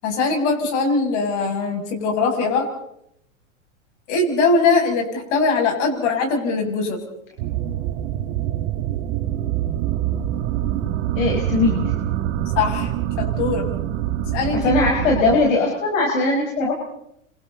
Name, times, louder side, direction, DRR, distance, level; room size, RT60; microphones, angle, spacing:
voice 1, 0.0-2.7 4.1-7.0 12.5-13.7 14.3-14.7, left 4 dB, 60° left, 2 dB, 7.7 m, -21 dB
sound 1, 7.4-15.4, right 12 dB, 55° right, 4.0 m, -25 dB
voice 2, 11.2-11.8 14.5-16.7, left 3 dB, 75° left, -1 dB, 5.5 m, -20 dB
29.0 x 26.5 x 4.2 m, 0.76 s
hypercardioid pair, 120°, 39 cm